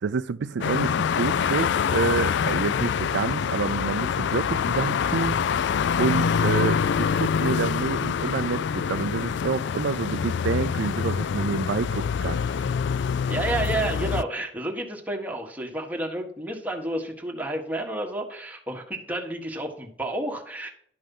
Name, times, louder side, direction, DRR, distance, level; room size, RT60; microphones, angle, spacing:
voice 1, 0.0-5.4 6.0-12.7, right 5 dB, 70° right, 0.4 m, -28 dB
sound 1, 0.6-14.2, left 7 dB, 65° left, 0.3 m, -25 dB
voice 2, 13.3-20.7, right 2 dB, 10° right, 1.6 m, -30 dB
11.5 x 5.4 x 5.4 m
head